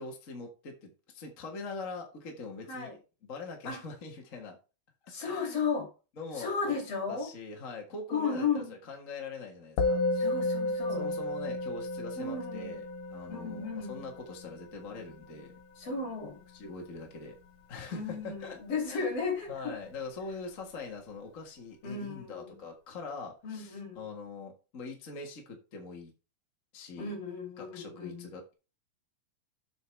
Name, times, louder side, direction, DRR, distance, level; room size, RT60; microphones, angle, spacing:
voice 1, 0.0-2.9 3.3-4.6 5.0-5.7 6.2-6.7 7.1-10.0 11.0-12.8 13.1-15.5 16.5-17.3 17.7-18.6 18.9-19.1 19.5-26.1 26.7-27.1 27.6-28.5, left 3 dB, 35° left, 1 dB, 1.5 m, -43 dB
voice 2, 5.1-5.9 6.3-7.3 8.1-8.7 10.1-11.1 12.2-12.8 13.3-14.0 15.8-16.4 17.9-19.8 21.8-22.6 23.4-24.0 27.0-28.3, left 5 dB, 50° left, 2 dB, 3.9 m, -34 dB
Musical instrument, 9.8-19.3, left 2 dB, 85° left, 2.7 m, -35 dB
8.1 x 8.0 x 3.4 m, 0.31 s
omnidirectional pair, 3.7 m